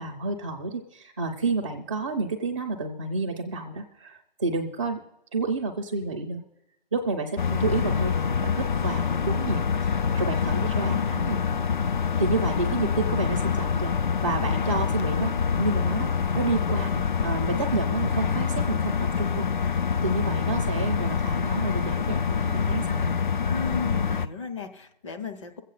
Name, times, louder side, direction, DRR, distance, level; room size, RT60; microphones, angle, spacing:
voice 1, 0.0-5.0 5.3-6.4 6.9-11.4 12.2-23.1, right 3 dB, 10° right, 4 dB, 0.5 m, -30 dB
sound 1, 7.4-24.3, left 6 dB, 50° left, 0.5 m, -26 dB
voice 2, 10.4-11.2 23.5-25.6, left 5 dB, 30° left, 5 dB, 1.0 m, -35 dB
22.5 x 8.3 x 4.0 m, 0.87 s
hypercardioid pair, 160°, 30 cm